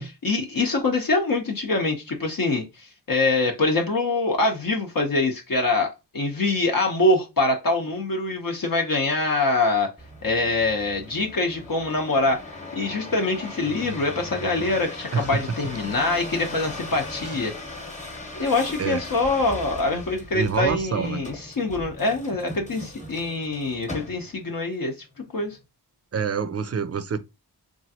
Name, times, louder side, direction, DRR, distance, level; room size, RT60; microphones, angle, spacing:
voice 1, 0.2-9.9 10.2-17.5 18.4-25.6, left 2 dB, 55° left, 0.7 m, -24 dB
sound 1, 10.0-24.5 25.1-25.6, left 2 dB, 15° left, 1.0 m, -38 dB
voice 2, 15.1-15.6 17.2-17.4 18.8-19.0 20.3-21.2 26.1-27.2, right 6 dB, 40° right, 0.4 m, -26 dB
3.1 x 2.4 x 2.7 m
wide cardioid pair, 55°, 41 cm